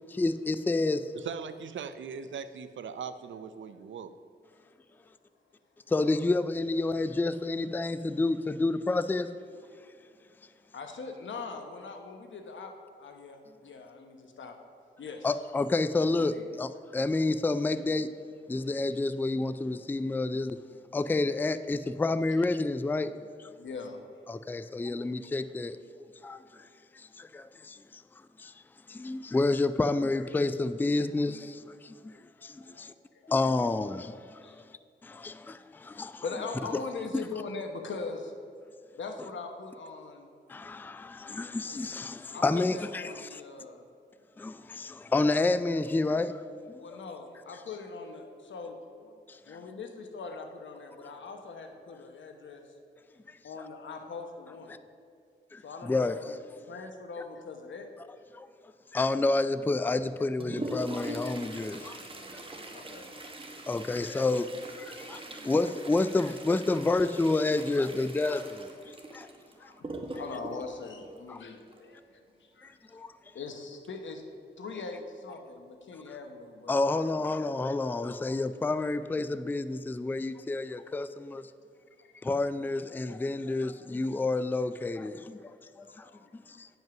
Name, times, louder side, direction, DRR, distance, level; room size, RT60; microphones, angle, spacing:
voice 1, 0.1-1.1 5.9-9.3 15.2-18.1 18.5-20.6 20.9-23.1 23.4-23.5 24.3-26.7 26.9-28.0 28.4-28.5 28.9-32.9 33.3-34.6 35.0-36.2 40.5-43.4 44.4-46.4 49.3-49.6 53.3-53.4 55.5-56.2 58.3-58.5 58.9-62.0 63.7-64.5 64.8-69.3 69.6-69.7 71.3-71.4 72.6-73.1 76.7-81.4 82.2-86.7, left 2 dB, 10° left, 0.3 m, -29 dB
voice 2, 1.1-4.1, right 6 dB, 80° right, 0.5 m, -40 dB
voice 3, 10.7-14.6 15.0-15.3 15.9-16.5 23.6-24.0 32.6-32.9 33.1-33.3 34.4-34.6 35.1-35.3 35.5-35.6 36.2-38.3 39.0-40.3 42.3-43.8 46.8-49.2 49.5-52.6 53.4-54.7 55.6-56.4 56.7-57.9 62.2-62.3 62.7-63.2 64.9-65.1 65.4-65.5 69.6-73.0 73.3-74.2 74.6-77.2 82.0-82.1 84.9-85.0 85.4-85.5 85.8-86.6, left 4 dB, 80° left, 1.0 m, -42 dB
Toilet flush, 60.0-72.0 73.8-73.9 74.3-74.4 75.2-75.3 75.9-76.2 76.6-76.8, right 2 dB, 30° right, 1.1 m, -42 dB
9.1 x 5.4 x 5.9 m
cardioid pair, 75°, 19 cm